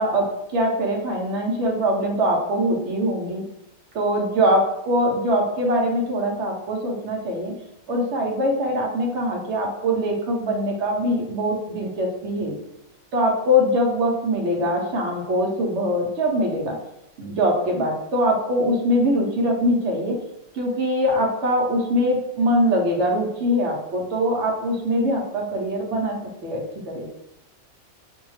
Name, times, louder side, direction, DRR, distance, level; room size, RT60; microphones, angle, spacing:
voice 1, 0.0-3.4 3.9-7.5 7.9-12.5 13.1-16.8 17.2-20.2 20.5-26.2 26.4-27.1, equal, 65° right, 0 dB, 0.9 m, -22 dB
2.6 x 2.2 x 3.1 m, 0.86 s
omnidirectional pair, 1.5 m